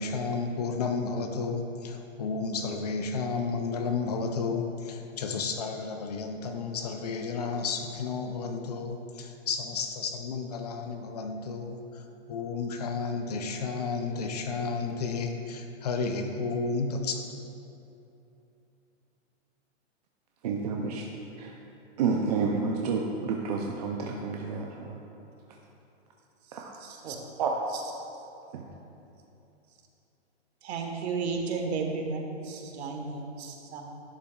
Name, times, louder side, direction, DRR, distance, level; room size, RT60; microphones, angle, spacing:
voice 1, 0.0-17.3, left 4 dB, 35° left, 5 dB, 0.5 m, -32 dB
voice 2, 20.4-21.0 21.4-21.5 22.0-25.0 26.5-26.7 27.4-27.6 28.5-28.6, right 5 dB, 35° right, 0 dB, 0.5 m, -29 dB
voice 3, 26.8-27.2 27.7-27.8 30.6-33.8, right 4 dB, 60° right, 2 dB, 1.4 m, -33 dB
11.5 x 9.9 x 2.4 m, 2.8 s
hypercardioid pair, 160°, 36 cm